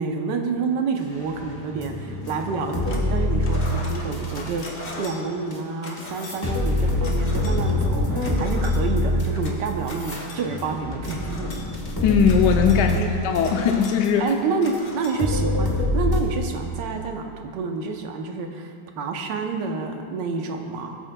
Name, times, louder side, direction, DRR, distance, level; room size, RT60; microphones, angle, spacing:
voice 1, 0.0-4.7 5.0-11.6 12.9-13.1 14.2-21.0, right 4 dB, 75° right, 3 dB, 1.4 m, -28 dB
sound 1, 1.3-4.6 5.5-5.6 6.0-14.3 14.7-14.8 15.2-16.2, left 1 dB, 15° left, 0.8 m, -25 dB
sound 2, 2.2-3.1 3.4-15.8, left 2 dB, 40° left, 1.2 m, -41 dB
voice 2, 12.0-14.2, left 7 dB, 75° left, 4 dB, 1.1 m, -20 dB
17.5 x 7.8 x 2.2 m, 2.4 s
omnidirectional pair, 2.0 m